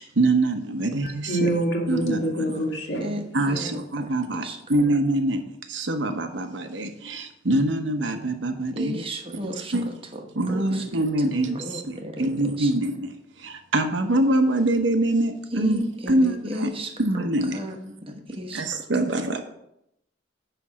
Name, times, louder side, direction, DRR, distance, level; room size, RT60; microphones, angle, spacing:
voice 1, 0.0-1.3 1.9-2.4 3.3-9.0 9.7-9.9 10.4-16.7 17.0-17.6 18.5-19.4, right 2 dB, 80° right, 6 dB, 0.9 m, -24 dB
voice 2, 1.0-3.2, right 1 dB, 70° left, 0 dB, 1.9 m, -26 dB
voice 3, 3.0-4.1 4.4-4.6 4.9-5.0 8.7-11.0 11.3-12.7 15.5-17.8 18.1-18.7 19.1-19.3, equal, 30° right, 4 dB, 1.0 m, -34 dB
9.8 x 3.4 x 6.1 m, 0.81 s
head